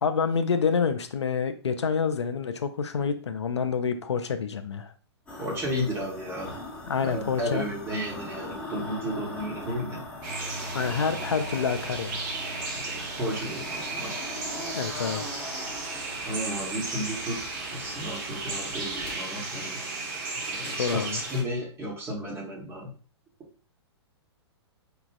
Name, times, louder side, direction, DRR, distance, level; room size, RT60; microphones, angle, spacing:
voice 1, 0.0-4.9 6.9-7.7 10.7-12.2 14.7-15.3 20.7-21.2, left 6 dB, 80° left, 9 dB, 0.4 m, -27 dB
sound 1, 5.3-19.1 20.5-20.9 21.4-21.5, left 2 dB, 10° left, 1.2 m, -41 dB
voice 2, 5.4-6.5 7.0-10.0 12.7-14.1 16.3-19.8 20.3-22.9, equal, 15° right, -2 dB, 1.1 m, -33 dB
sound 2, 10.2-21.4, right 3 dB, 45° right, 1.0 m, -35 dB
4.6 x 2.4 x 2.3 m, 0.39 s
figure-of-eight pair, 115°, 14 cm